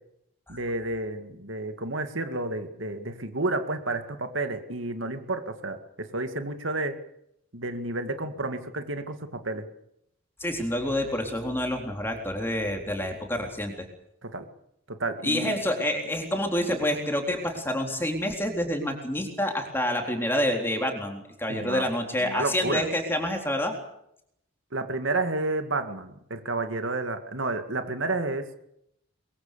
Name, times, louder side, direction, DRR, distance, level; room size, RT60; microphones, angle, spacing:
voice 1, 0.5-7.0 7.5-9.7 14.2-14.5 14.9-15.6 21.5-21.9 22.2-22.9 24.7-28.5, right 2 dB, 70° right, 7 dB, 2.1 m, -31 dB
voice 2, 10.4-13.9 15.2-23.7, left 1 dB, 10° left, 3 dB, 3.8 m, -28 dB
23.5 x 22.5 x 6.9 m, 0.76 s
head